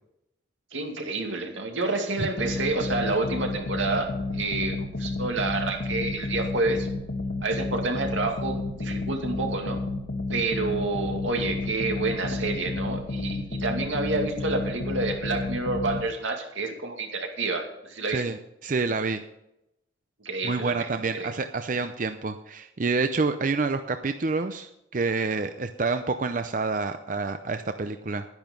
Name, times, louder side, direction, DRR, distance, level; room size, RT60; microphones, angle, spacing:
voice 1, 0.7-6.9 7.4-9.8 10.3-18.2 20.2-21.3, right 2 dB, 85° right, 3 dB, 2.4 m, -29 dB
sound 1, 2.4-16.0, left 2 dB, 70° left, 1.4 m, -31 dB
voice 2, 18.1-19.2 20.4-28.2, right 4 dB, 45° right, 8 dB, 0.5 m, -28 dB
11.0 x 10.5 x 5.3 m, 0.85 s
head